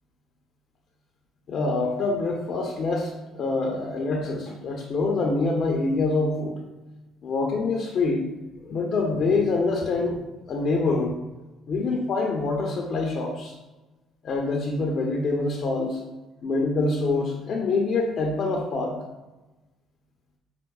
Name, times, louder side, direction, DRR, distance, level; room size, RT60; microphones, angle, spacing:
voice 1, 1.5-6.6 7.2-8.2 8.6-10.2 10.5-11.2 11.7-13.5 14.2-16.0 16.4-19.0, left 3 dB, 55° left, -1 dB, 0.5 m, -25 dB
5.5 x 2.0 x 2.2 m, 1.1 s
cardioid pair, 90°, 0 cm